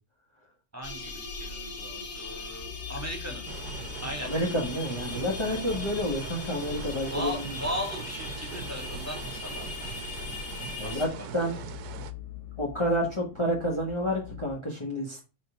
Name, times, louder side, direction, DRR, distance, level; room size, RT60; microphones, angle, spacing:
voice 1, 0.7-3.4 4.0-4.3 7.1-10.0 10.8-11.5, equal, 10° right, 0 dB, 2.6 m, -37 dB
sound 1, 0.8-11.1, left 3 dB, 85° left, 2.2 m, -39 dB
sound 2, 2.6-14.5, left 12 dB, 55° left, 1.1 m, -45 dB
sound 3, 3.5-12.1, right 9 dB, 80° right, 1.2 m, -42 dB
voice 2, 4.2-7.3 10.8-11.5 12.6-15.2, equal, 20° left, -3 dB, 1.7 m, -29 dB
6.7 x 5.1 x 5.1 m, 0.32 s
omnidirectional pair, 1.7 m